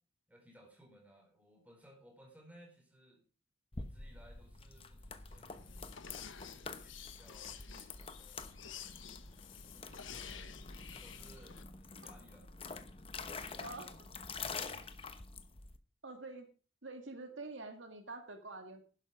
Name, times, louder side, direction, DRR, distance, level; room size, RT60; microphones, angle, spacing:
voice 1, 0.3-3.2 3.8-6.0 6.4-8.6 9.2-12.6 13.2-14.8, equal, 5° right, 1 dB, 4.4 m, -62 dB
sound 1, 3.7-15.8, left 4 dB, 30° left, 1.0 m, -47 dB
sound 2, 5.3-11.6, left 8 dB, 90° left, 1.4 m, -51 dB
voice 2, 16.0-16.5 16.8-18.9, right 3 dB, 80° right, 6 dB, 2.1 m, -46 dB
11.5 x 11.5 x 5.0 m, 0.37 s
head